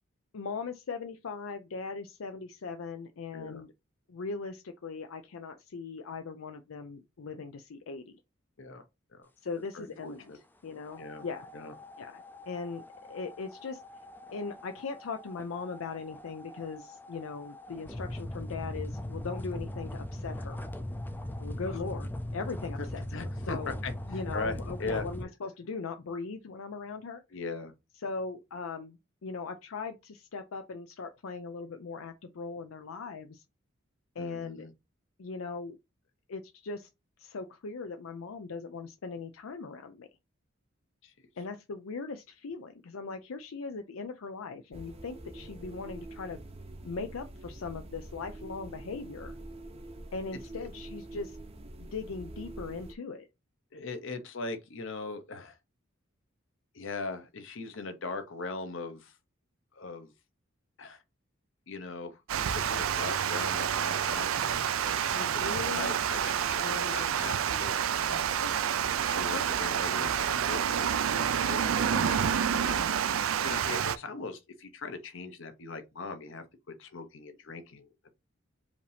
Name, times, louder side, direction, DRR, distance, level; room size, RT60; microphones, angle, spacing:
voice 1, 0.3-3.7 4.1-8.1 9.4-10.3 10.6-11.5 12.0-12.8 13.1-13.8 14.3-20.6 21.4-23.8 24.1-27.2 28.0-33.4 34.2-34.7 35.2-35.8 36.3-36.9 37.2-40.1 41.4-46.4 46.8-49.4 50.1-51.4 51.9-53.3 64.8-66.0 66.6-67.2 68.4-68.5 69.3-69.5 71.4-72.1, left 4 dB, 85° left, 0.5 m, -39 dB
voice 2, 3.3-3.6 8.6-8.8 9.1-9.3 9.7-10.4 11.0-11.2 11.5-11.7 21.7-21.8 22.8-25.0 27.3-27.7 34.2-34.7 41.0-41.1 50.6-50.7 53.7-55.6 56.7-59.2 59.7-60.1 60.8-61.0 61.7-62.2 62.5-68.4 69.1-72.9 73.4-78.1, left 3 dB, 65° left, 0.9 m, -40 dB
sound 1, 10.8-25.2, left 1 dB, 10° left, 0.4 m, -40 dB
sound 2, 44.7-52.9, right 1 dB, 30° right, 0.7 m, -45 dB
Water, 62.3-74.0, right 8 dB, 85° right, 0.4 m, -28 dB
4.9 x 2.7 x 3.4 m
head